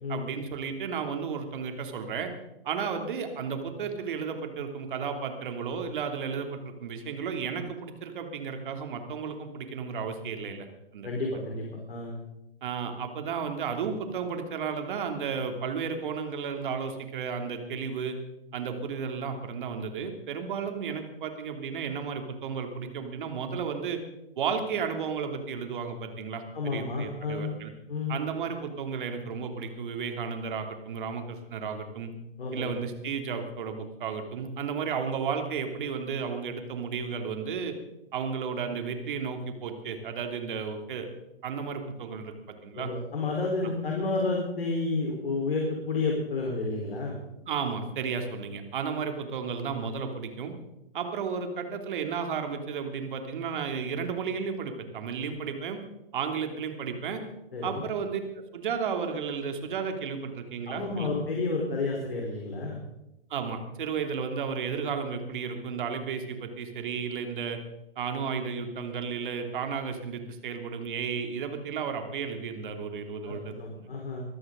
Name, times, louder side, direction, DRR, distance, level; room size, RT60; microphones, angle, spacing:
voice 1, 0.1-2.3 2.6-10.7 10.9-11.1 12.6-18.2 18.5-24.0 24.4-27.7 28.1-32.1 32.5-37.7 38.1-41.1 41.4-42.3 42.6-42.9 47.5-50.5 50.9-55.8 56.1-57.2 57.6-58.2 58.5-61.1 63.3-67.6 68.0-73.9, right 6 dB, 60° right, 5 dB, 3.1 m, -33 dB
voice 2, 11.0-12.2 26.5-27.5 27.9-28.2 32.4-32.7 42.7-47.2 57.5-57.8 60.7-62.8 73.3-74.2, left 3 dB, 75° left, -1 dB, 4.5 m, -31 dB
23.0 x 14.5 x 4.0 m, 0.90 s
hypercardioid pair, 125°, 29 cm